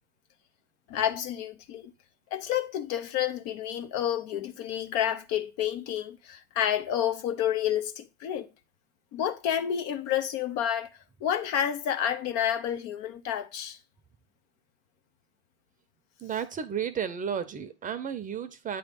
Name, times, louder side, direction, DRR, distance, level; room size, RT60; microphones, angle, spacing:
voice 1, 0.9-1.9 2.3-8.5 9.1-10.9 11.2-13.8, left 10 dB, 50° left, 0.9 m, -29 dB
voice 2, 16.2-18.8, right 7 dB, 25° right, 0.8 m, -33 dB
8.8 x 3.2 x 5.3 m
hypercardioid pair, 95°, 33 cm